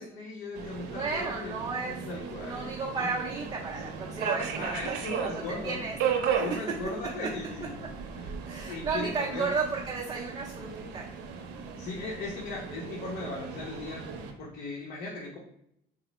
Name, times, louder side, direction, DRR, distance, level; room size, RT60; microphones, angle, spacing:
voice 1, 0.0-2.7 3.0-3.1 4.6-5.8 6.4-7.9 8.1-8.3 8.7-9.5 11.8-14.0 14.4-15.4, left 2 dB, 65° left, -3 dB, 0.8 m, -38 dB
Subway metro underground, 0.5-14.3, right 6 dB, 90° right, 0.6 m, -36 dB
voice 2, 0.9-6.0 6.3-6.4 8.5-11.1, right 4 dB, 25° right, -2 dB, 0.6 m, -34 dB
3.9 x 2.0 x 3.0 m, 0.74 s
cardioid pair, 110°, 17 cm